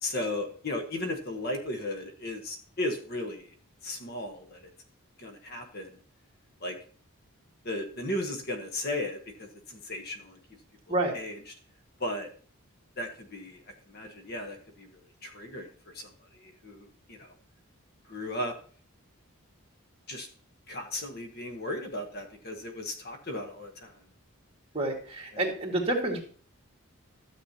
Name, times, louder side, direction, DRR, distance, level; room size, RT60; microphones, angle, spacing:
voice 1, 0.0-3.5 3.8-4.6 5.2-5.9 6.6-6.7 7.6-10.4 11.1-11.3 12.0-12.3 13.0-13.6 13.9-14.9 15.2-16.1 16.4-17.3 18.1-18.5 20.1-20.3 20.7-23.9 25.3-25.4, left 1 dB, 45° left, 4 dB, 1.2 m, -35 dB
voice 2, 24.7-26.2, right 2 dB, 25° right, -1 dB, 2.0 m, -28 dB
12.5 x 7.5 x 2.9 m, 0.42 s
head